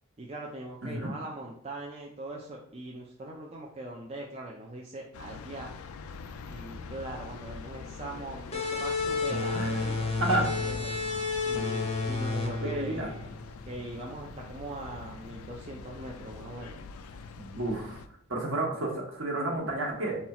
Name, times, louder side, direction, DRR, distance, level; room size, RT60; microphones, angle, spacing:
voice 1, 0.2-5.8 6.5-10.9 11.5-13.3 13.7-16.8, right 2 dB, 25° right, -1 dB, 0.4 m, -41 dB
sound 1, 5.1-18.1, left 5 dB, 75° left, 0.3 m, -44 dB
sound 2, 8.5-13.8, left 3 dB, 25° left, 0.6 m, -31 dB
voice 2, 12.6-13.1 17.5-18.0 18.3-20.2, right 2 dB, 60° right, -1 dB, 1.2 m, -30 dB
4.3 x 2.3 x 4.1 m, 0.65 s
head